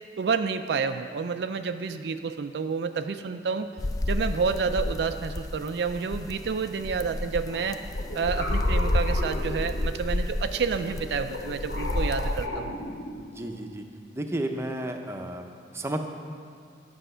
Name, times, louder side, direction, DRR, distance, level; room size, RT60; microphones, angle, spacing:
voice 1, 0.2-3.7 4.1-7.8 8.1-12.8, right 5 dB, 70° right, 8 dB, 0.4 m, -29 dB
sound 1, 3.8-12.5, left 1 dB, 20° left, 0.3 m, -30 dB
sound 2, 7.5-10.2 10.8-13.5, left 1 dB, 70° left, 1.2 m, -36 dB
voice 2, 13.2-13.8 14.1-15.4 15.7-16.0, right 1 dB, 15° right, 3 dB, 0.7 m, -32 dB
10.0 x 7.1 x 5.5 m, 2.1 s
head